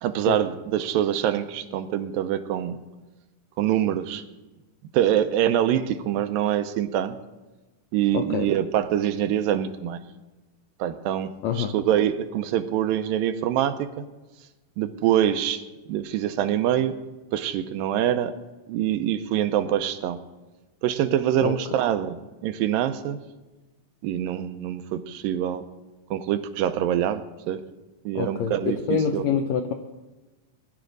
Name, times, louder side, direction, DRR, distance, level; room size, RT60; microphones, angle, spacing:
voice 1, 0.0-2.8 3.6-4.2 4.9-7.2 7.9-10.0 10.8-14.0 14.8-15.6 15.9-17.0 17.3-18.4 18.7-20.2 20.8-22.2 22.4-23.2 24.0-25.6 26.1-27.6 28.1-29.2, right 11 dB, 90° right, 10 dB, 2.5 m, -25 dB
voice 2, 8.1-8.5 11.4-11.7 21.4-21.5 28.1-29.7, left 7 dB, 80° left, 6 dB, 1.5 m, -26 dB
21.5 x 11.0 x 4.0 m, 1.2 s
omnidirectional pair, 4.0 m